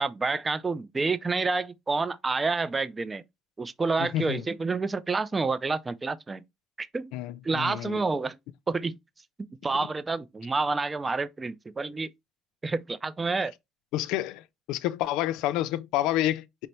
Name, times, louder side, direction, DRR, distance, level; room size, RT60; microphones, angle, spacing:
voice 1, 0.0-3.2 3.6-6.4 6.8-7.1 7.4-8.4 8.7-9.0 9.6-12.1 12.6-13.5, right 3 dB, 15° right, 0.3 m, -28 dB
voice 2, 4.0-4.4 7.1-8.0 13.9-14.4 14.7-16.7, left 14 dB, 75° left, 0.4 m, -29 dB
5.2 x 2.1 x 4.2 m
cardioid pair, 140°, 0 cm